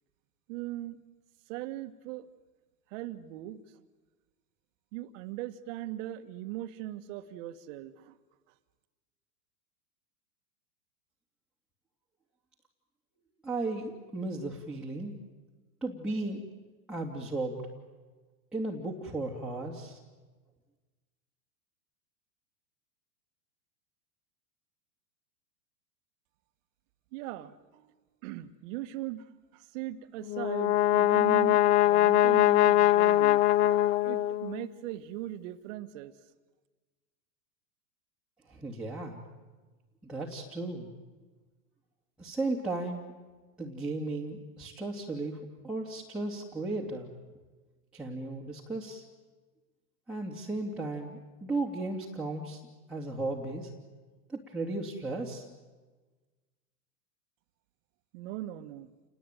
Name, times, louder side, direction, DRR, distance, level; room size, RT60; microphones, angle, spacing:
voice 1, 0.5-1.0 1.5-2.3 2.9-3.6 4.9-8.1 27.1-27.9 28.2-33.5 34.0-36.1 58.1-58.9, right 14 dB, 50° right, 10 dB, 1.8 m, -39 dB
voice 2, 13.4-15.1 15.8-16.4 16.9-17.6 18.5-20.0 38.5-39.2 40.0-40.9 42.2-43.0 43.6-47.1 47.9-49.0 50.1-52.6 52.9-53.7 54.3-55.5, right 2 dB, ahead, 0 dB, 2.8 m, -35 dB
Brass instrument, 30.3-34.7, left 13 dB, 40° left, 0.9 m, -23 dB
29.0 x 20.0 x 9.2 m, 1.3 s
hypercardioid pair, 130°, 46 cm